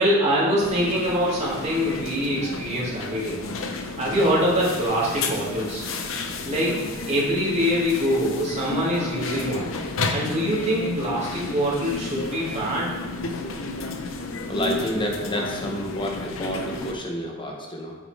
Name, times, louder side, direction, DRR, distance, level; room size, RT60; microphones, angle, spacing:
voice 1, 0.0-3.4 4.0-5.8 6.4-9.7 10.1-12.9 13.8-13.9, equal, 35° right, -6 dB, 2.2 m, -24 dB
sound 1, 0.6-16.9, left 3 dB, 85° left, 0.7 m, -32 dB
voice 2, 14.5-18.0, equal, 25° left, 0 dB, 1.1 m, -29 dB
8.6 x 4.0 x 4.6 m, 1.3 s
head